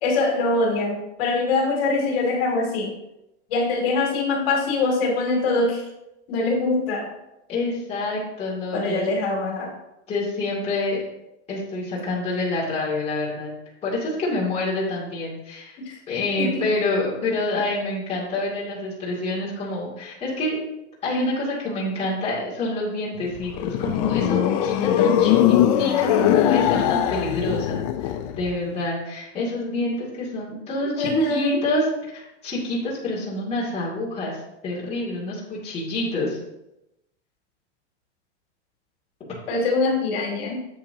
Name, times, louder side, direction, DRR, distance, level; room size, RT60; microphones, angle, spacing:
voice 1, 0.0-3.0 3.5-5.9 6.3-7.1 8.7-9.8 15.8-16.0 16.4-16.6 31.0-31.6 39.5-40.7, left 3 dB, 55° left, -1 dB, 2.5 m, -23 dB
voice 2, 7.5-9.1 10.1-11.0 11.5-13.5 13.8-15.8 16.1-20.6 21.0-31.8 32.1-34.4 34.6-36.4, left 2 dB, 20° left, -6 dB, 2.4 m, -27 dB
sound 1, 23.2-28.6, left 11 dB, 35° left, 0.4 m, -21 dB
10.0 x 7.4 x 2.8 m, 0.90 s
supercardioid pair, 155°, 35 cm